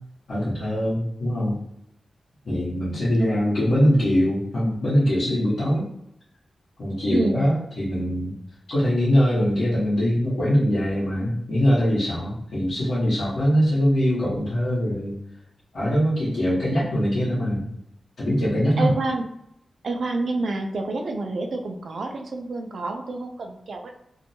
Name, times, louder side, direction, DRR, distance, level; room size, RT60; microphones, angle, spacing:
voice 1, 0.3-1.6 2.4-5.8 6.8-8.3 8.7-15.1 15.7-17.7 18.2-18.9, equal, 80° left, -12 dB, 1.2 m, -22 dB
voice 2, 7.1-7.4 18.8-19.2 19.8-23.9, right 2 dB, 65° right, 4 dB, 0.4 m, -28 dB
2.6 x 2.2 x 2.7 m, 0.77 s
cardioid pair, 80°, 0 cm